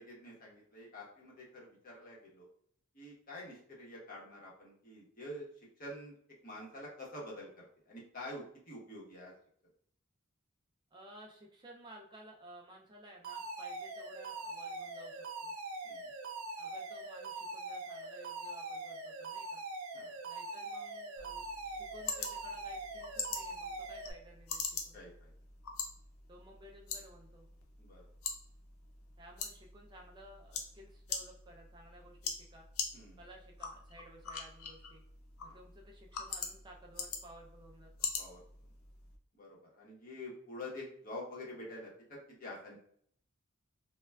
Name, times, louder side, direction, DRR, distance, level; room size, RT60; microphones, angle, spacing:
voice 1, 0.0-2.5 2.9-5.4 5.8-6.1 6.4-7.5 7.9-9.3 15.8-16.1 19.9-20.1 24.9-25.3 27.8-28.0 32.9-33.2 35.5-35.6 38.2-38.4 39.3-42.8, left 1 dB, 45° left, -3 dB, 0.9 m, -47 dB
voice 2, 10.9-15.5 16.6-19.6 20.2-25.0 26.3-27.5 29.2-32.7 33.2-35.0 35.4-38.1, right 1 dB, 20° right, -1 dB, 0.3 m, -56 dB
Alarm, 13.2-24.1, right 2 dB, 90° right, 0.5 m, -43 dB
sound 1, 21.2-39.2, left 5 dB, 85° left, 0.5 m, -44 dB
3.2 x 2.2 x 2.2 m, 0.64 s
head